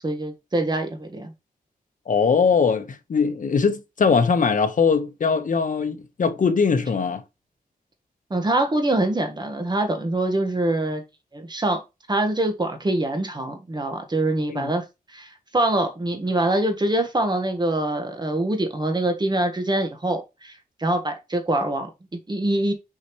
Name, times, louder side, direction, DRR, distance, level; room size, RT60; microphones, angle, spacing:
voice 1, 0.0-1.3 8.3-11.0 11.3-11.8 12.1-14.8 15.1-22.7, right 1 dB, 30° right, 1.5 m, -24 dB
voice 2, 2.1-7.2 14.5-14.7, left 5 dB, 60° left, 1.2 m, -21 dB
6.2 x 5.6 x 3.1 m
wide cardioid pair, 140°, 15 cm